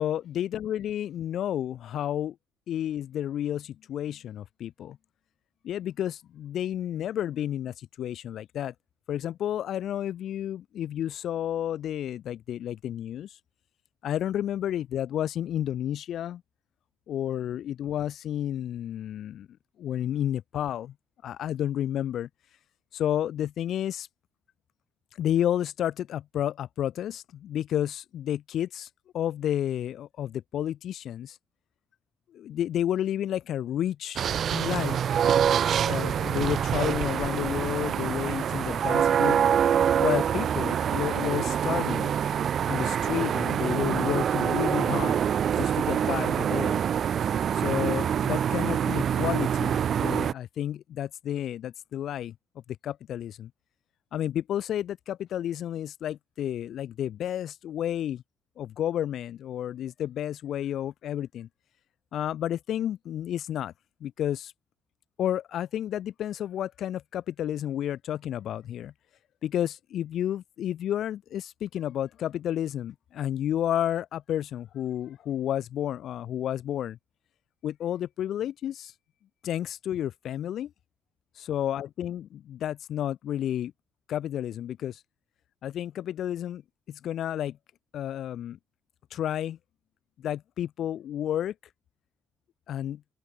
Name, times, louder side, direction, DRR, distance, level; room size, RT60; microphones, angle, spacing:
voice 1, 0.0-2.4 2.7-5.0 5.6-8.7 9.1-13.4 14.0-16.4 17.1-19.5 19.8-20.9 21.2-22.3 22.9-24.1 25.1-28.9 29.1-31.4 32.3-34.3 34.5-35.0 35.8-39.4 40.0-42.1 42.7-45.2 45.5-46.8 47.5-52.3 52.8-53.5 54.1-58.2 58.6-61.5 62.1-63.7 64.0-64.5 65.2-68.9 69.4-77.0 77.6-78.9 79.4-80.7 81.4-83.7 84.1-85.0 85.6-86.6 86.9-87.6 87.9-88.6 89.1-89.6 90.2-91.5 92.7-93.0, left 11 dB, 70° left, 4.3 m, -31 dB
sound 1, 34.2-50.3, right 8 dB, 60° right, 2.2 m, -25 dB
open air
cardioid pair, 90°, 0 cm